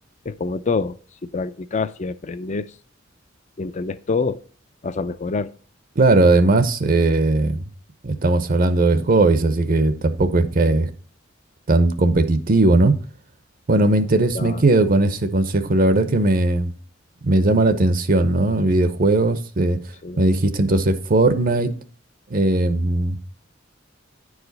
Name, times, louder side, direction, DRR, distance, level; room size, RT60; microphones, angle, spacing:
voice 1, 0.3-1.0 1.2-2.7 3.6-4.4 4.8-5.5 14.3-14.6 20.0-20.2, left 4 dB, 40° left, 0.5 m, -26 dB
voice 2, 6.0-7.6 8.0-10.9 11.7-12.9 13.7-16.7 17.2-19.8 20.2-21.8 22.3-23.2, right 2 dB, 45° right, 0.7 m, -18 dB
9.6 x 4.9 x 4.0 m
head